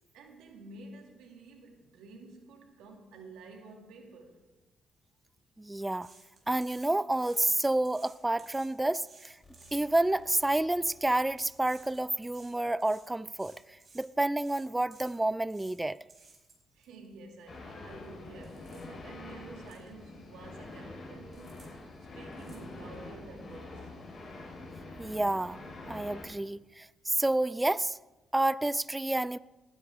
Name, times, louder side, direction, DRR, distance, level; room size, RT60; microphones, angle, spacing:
voice 1, 0.1-4.4 16.7-24.2, right 3 dB, 90° right, 2.4 m, -50 dB
voice 2, 5.6-6.1 6.5-9.4 9.7-13.6 13.9-16.0 25.0-28.0 28.3-29.4, right 1 dB, 10° right, 0.3 m, -29 dB
sound 1, 6.0-10.0 10.7-10.9 11.3-16.9 17.4-17.5 17.9-18.1 18.4-18.9 19.3-19.4 19.7-19.9 20.2-20.8 21.3-21.7 22.0-23.1 23.5-23.6, right 3 dB, 40° right, 5.6 m, -58 dB
sound 2, 9.4-15.8, left 1 dB, 5° left, 3.0 m, -63 dB
sound 3, 17.5-26.3, left 2 dB, 45° left, 4.5 m, -46 dB
18.5 x 12.5 x 3.6 m
cardioid pair, 90°, 0 cm